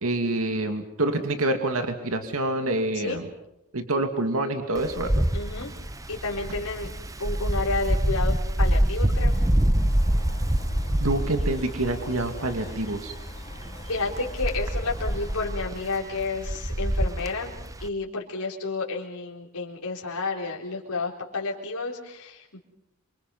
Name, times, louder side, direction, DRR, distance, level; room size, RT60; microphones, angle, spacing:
voice 1, 0.0-3.2 3.7-5.2 11.0-13.1, right 2 dB, 70° right, 6 dB, 2.4 m, -27 dB
Wind, 4.8-17.9, right 1 dB, 15° right, 0.9 m, -26 dB
voice 2, 5.3-5.7 6.1-6.9 7.2-9.3 13.9-17.5 17.8-22.6, left 3 dB, 85° left, -2 dB, 4.1 m, -31 dB
sound 1, 9.1-15.5, left 1 dB, 30° left, 3.1 m, -40 dB
28.0 x 25.0 x 5.6 m, 0.86 s
head